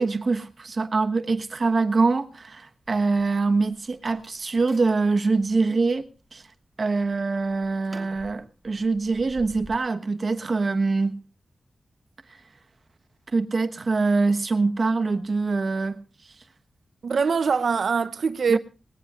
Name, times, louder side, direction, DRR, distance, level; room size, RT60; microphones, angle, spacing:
voice 1, 0.0-6.4 6.8-11.2 13.3-16.0 18.5-18.6, right 3 dB, 45° right, 1.2 m, -24 dB
sound 1, 2.8-5.6 6.1-6.6 7.0-9.8, right 2 dB, 20° right, 2.9 m, -49 dB
voice 2, 17.0-18.6, right 5 dB, 70° right, 0.6 m, -23 dB
21.0 x 18.0 x 2.5 m
wide cardioid pair, 155°, 0 cm